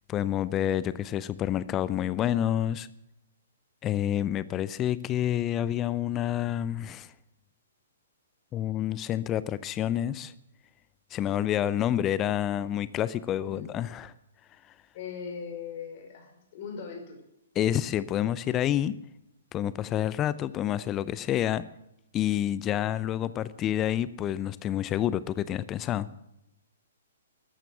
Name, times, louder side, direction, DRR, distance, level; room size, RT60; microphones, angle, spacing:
voice 1, 0.1-2.9 3.8-7.1 8.5-10.3 11.1-14.1 17.5-18.9 19.5-21.6 22.1-26.1, left 11 dB, 20° left, 17 dB, 0.6 m, -28 dB
voice 2, 14.9-17.2, left 6 dB, 40° left, 3 dB, 5.4 m, -39 dB
14.0 x 12.0 x 7.8 m, 0.85 s
figure-of-eight pair, 120°, 0 cm